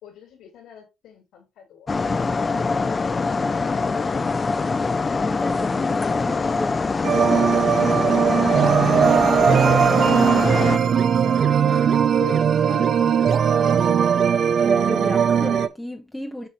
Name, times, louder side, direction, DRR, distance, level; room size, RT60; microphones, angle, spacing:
voice 1, 0.0-2.7 3.3-4.4 8.8-9.8 12.2-14.1 14.5-14.7 16.4-16.5, left 9 dB, 90° left, 2.5 m, -42 dB
sound 1, 1.9-10.8, left 4 dB, 30° left, 0.5 m, -23 dB
voice 2, 5.2-8.9 10.3-10.6 11.2-12.0 14.6-16.5, left 1 dB, 10° left, 0.8 m, -35 dB
sound 2, 7.0-15.7, right 7 dB, 60° right, 0.5 m, -19 dB
6.7 x 6.0 x 3.0 m
cardioid pair, 90°, 0 cm